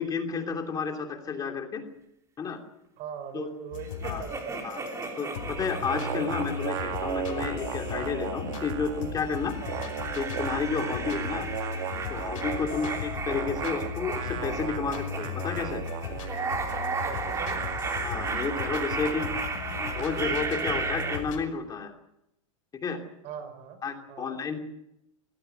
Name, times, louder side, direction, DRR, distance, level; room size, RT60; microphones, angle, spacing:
voice 1, 0.0-1.8 2.4-2.6 3.3-3.5 4.0-4.2 4.6-4.8 5.2-5.3 5.6-9.6 10.2-11.5 11.8-15.8 18.0-19.3 19.8-21.9 22.8-23.0 23.8-24.6, left 5 dB, 20° left, 4 dB, 2.9 m, -31 dB
voice 2, 3.0-5.1 9.6-9.9 12.7-13.0 17.0-17.6 23.2-23.8 24.1-24.4, right 7 dB, 45° right, 12 dB, 4.8 m, -40 dB
sound 1, 3.7-21.4, left 6 dB, 80° left, 5.5 m, -37 dB
sound 2, 4.0-8.7 9.3-21.2, right 4 dB, 20° right, 3.6 m, -35 dB
sound 3, 5.9-9.2 9.5-12.8 13.2-21.3, right 10 dB, 80° right, 2.7 m, -37 dB
25.0 x 16.5 x 8.1 m, 0.84 s
supercardioid pair, 135°, 17 cm